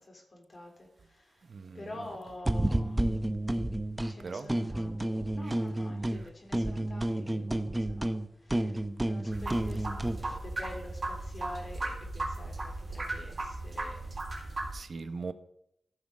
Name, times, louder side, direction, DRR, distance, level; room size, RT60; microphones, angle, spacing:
voice 1, 0.0-1.4 1.7-3.1 4.1-8.2 8.4-8.8 9.0-14.2 14.5-14.7, left 1 dB, 50° left, 3.4 m, -47 dB
voice 2, 1.5-2.1 2.8-3.1 4.2-4.9 14.7-15.3, right 4 dB, 65° right, 0.9 m, -41 dB
sound 1, 2.4-4.1 4.5-6.2 6.5-10.2, right 1 dB, 20° right, 0.8 m, -30 dB
sound 2, 9.3-14.7, right 2 dB, 45° right, 3.7 m, -36 dB
14.5 x 6.3 x 5.0 m
cardioid pair, 60°, 0 cm